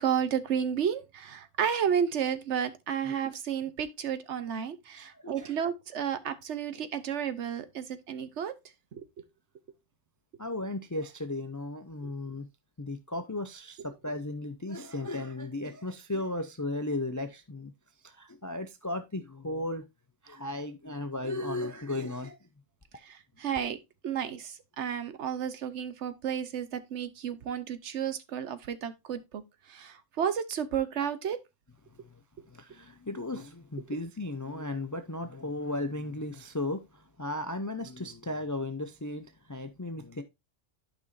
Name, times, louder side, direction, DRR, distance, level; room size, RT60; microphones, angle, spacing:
voice 1, 0.0-8.5 8.9-9.1 12.0-12.1 23.0-23.8 24.0-29.4 29.7-31.4, right 8 dB, 70° right, 1.1 m, -32 dB
voice 2, 5.0-5.5 10.4-12.5 12.8-17.7 18.0-19.8 20.2-22.4 32.5-36.8 37.2-40.2, left 2 dB, 25° left, 0.4 m, -35 dB
11.5 x 5.4 x 2.6 m
omnidirectional pair, 1.3 m